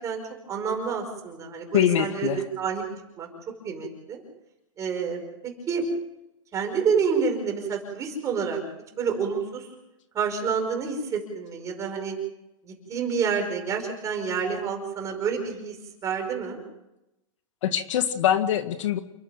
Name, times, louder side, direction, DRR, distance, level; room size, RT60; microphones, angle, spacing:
voice 1, 0.0-2.8 3.2-3.3 3.6-4.2 4.8-5.2 5.7-5.8 6.5-8.6 9.0-9.7 10.1-12.1 12.6-15.8 16.0-16.6, right 6 dB, 20° right, 3 dB, 5.3 m, -28 dB
voice 2, 1.7-2.4 17.6-19.0, left 10 dB, 65° left, 9 dB, 1.7 m, -23 dB
29.0 x 11.5 x 9.1 m, 0.89 s
hypercardioid pair, 160°, 17 cm